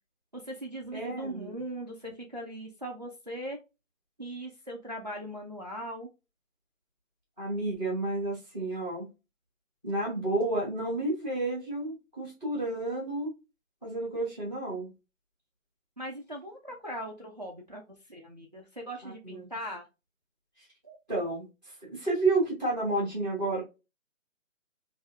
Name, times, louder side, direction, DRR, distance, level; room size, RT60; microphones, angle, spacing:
voice 1, 0.3-3.6 4.2-6.1 16.0-17.8 18.1-19.8, right 1 dB, 35° right, 0 dB, 0.5 m, -39 dB
voice 2, 0.9-1.5 7.4-9.0 9.8-13.3 13.8-14.9 19.0-19.5 20.8-21.4 21.9-23.6, right 2 dB, 5° left, -4 dB, 0.9 m, -31 dB
3.6 x 2.6 x 2.5 m, 0.26 s
figure-of-eight pair, 155°, 41 cm